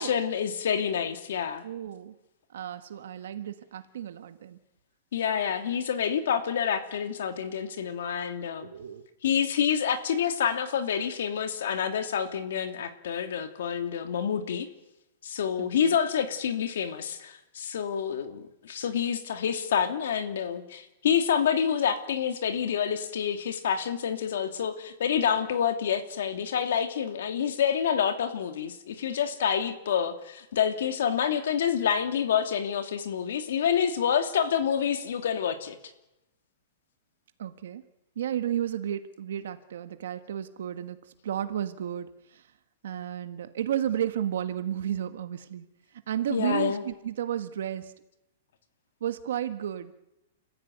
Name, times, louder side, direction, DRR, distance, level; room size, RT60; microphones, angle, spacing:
voice 1, 0.0-1.6 5.1-8.7 9.2-14.7 15.2-35.8 46.3-46.8, left 8 dB, 60° left, 7 dB, 2.9 m, -28 dB
voice 2, 1.6-2.1 2.5-4.6 8.6-9.0 15.6-16.0 37.4-37.8 38.1-41.0 41.2-42.4 42.8-45.7 46.1-47.9 49.0-49.9, right 10 dB, 60° right, 10 dB, 1.5 m, -32 dB
29.5 x 15.0 x 9.4 m, 0.93 s
hypercardioid pair, 180°, 0 cm